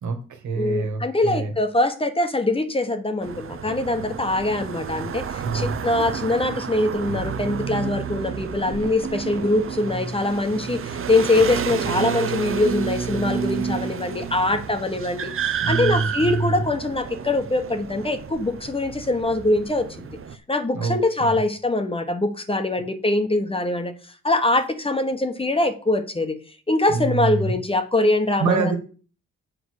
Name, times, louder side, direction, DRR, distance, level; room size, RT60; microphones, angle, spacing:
voice 1, 0.0-1.5 5.4-5.8 14.4-14.6 15.6-16.6 20.7-21.4 26.9-27.6 28.4-28.8, right 4 dB, 75° right, 6 dB, 2.0 m, -26 dB
voice 2, 0.6-20.1 20.5-23.9 24.2-26.4 26.7-28.7, left 2 dB, 20° left, 8 dB, 1.2 m, -23 dB
sound 1, 3.2-20.4, right 7 dB, 45° right, 0.9 m, -30 dB
7.5 x 4.9 x 6.6 m, 0.38 s
cardioid pair, 90°, 30 cm